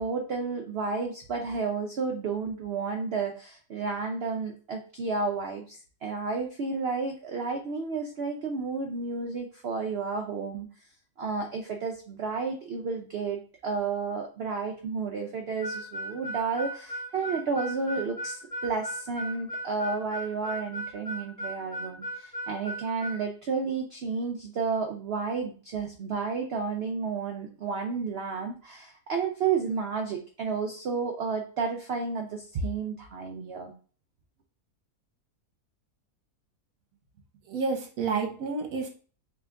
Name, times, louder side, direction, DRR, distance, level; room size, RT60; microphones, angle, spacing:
voice 1, 0.0-10.7 11.2-33.7, right 4 dB, 80° right, 3 dB, 0.5 m, -31 dB
Harmonica, 15.6-23.2, right 1 dB, 20° left, 2.0 m, -36 dB
voice 2, 37.5-38.9, right 4 dB, 60° right, 3 dB, 1.2 m, -30 dB
3.3 x 2.9 x 3.5 m, 0.40 s
omnidirectional pair, 1.7 m